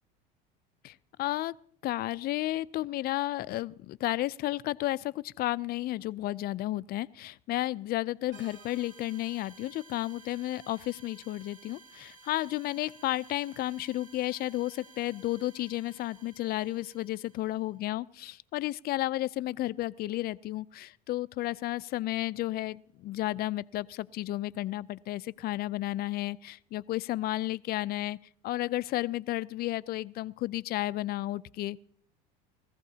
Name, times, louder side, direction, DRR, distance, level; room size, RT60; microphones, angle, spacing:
voice 1, 0.8-1.5 1.8-28.2 28.4-31.8, left 16 dB, 45° left, 0.5 m, -32 dB
sound 1, 8.3-17.7, right 4 dB, 50° right, 3.5 m, -55 dB
21.0 x 15.0 x 2.8 m
supercardioid pair, 90°, 21 cm